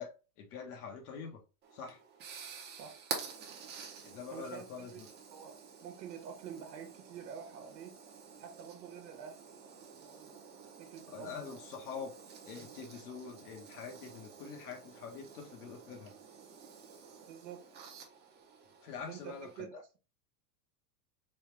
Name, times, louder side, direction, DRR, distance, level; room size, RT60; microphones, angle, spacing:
voice 1, 0.0-1.4 1.7-2.0 4.0-5.1 11.1-16.1 18.8-19.8, left 6 dB, 65° left, 1.5 m, -45 dB
sound 1, 1.6-19.6, right 6 dB, 20° right, 0.7 m, -49 dB
voice 2, 4.3-4.7 4.9-5.0 5.3-8.0 8.4-9.4 9.7-10.3 10.8-11.6 17.3-17.7 19.1-19.8, right 8 dB, 85° right, 1.2 m, -48 dB
4.1 x 2.5 x 3.2 m
supercardioid pair, 150°, 49 cm